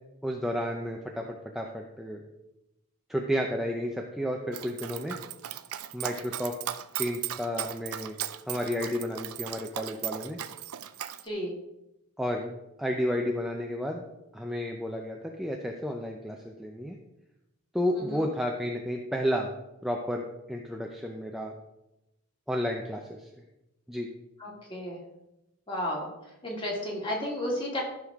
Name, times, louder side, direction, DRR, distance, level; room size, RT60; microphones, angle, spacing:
voice 1, 0.2-1.3 1.5-2.2 3.1-5.2 5.9-6.5 7.0-8.2 8.5-10.4 12.2-12.5 12.8-14.0 14.3-17.0 17.7-19.5 19.8-21.5 22.5-23.3 23.9-24.1, equal, ahead, 1 dB, 0.6 m, -31 dB
Dog, 4.5-11.2, right 11 dB, 85° right, 0.5 m, -37 dB
voice 2, 17.9-18.3 24.4-25.0 25.7-26.1 26.4-27.8, left 1 dB, 25° left, -2 dB, 2.4 m, -33 dB
13.5 x 6.3 x 3.6 m, 0.92 s
head